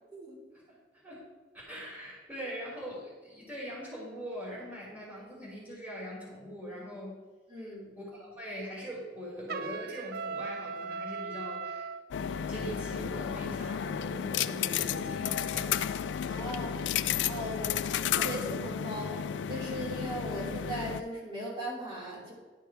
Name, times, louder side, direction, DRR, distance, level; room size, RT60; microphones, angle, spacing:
voice 1, 1.5-7.2 7.6-7.7 8.0-11.9 12.1-15.9 16.5-16.6 17.5-17.8, equal, 10° right, -7 dB, 2.9 m, -42 dB
voice 2, 7.5-7.9 16.3-16.9 17.2-19.2 19.5-22.3, equal, 30° right, -5 dB, 2.8 m, -38 dB
Trumpet, 9.5-12.0, right 5 dB, 55° right, 0.3 m, -38 dB
sound 1, 12.1-21.0, left 8 dB, 90° left, 0.3 m, -32 dB
11.5 x 4.6 x 4.7 m, 1.3 s
head